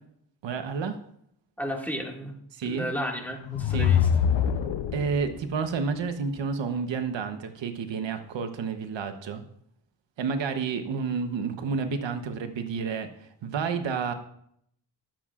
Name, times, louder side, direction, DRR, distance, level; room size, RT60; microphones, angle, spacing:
voice 1, 0.4-1.0 2.5-2.9 3.7-3.9 4.9-9.4 10.2-14.1, right 5 dB, 85° right, 7 dB, 1.0 m, -30 dB
voice 2, 1.6-2.3 2.6-4.1, equal, 5° left, 0 dB, 2.0 m, -33 dB
sound 1, 3.3-5.4, left 8 dB, 85° left, 0.8 m, -24 dB
20.5 x 7.4 x 2.5 m, 0.70 s
wide cardioid pair, 105°, 43 cm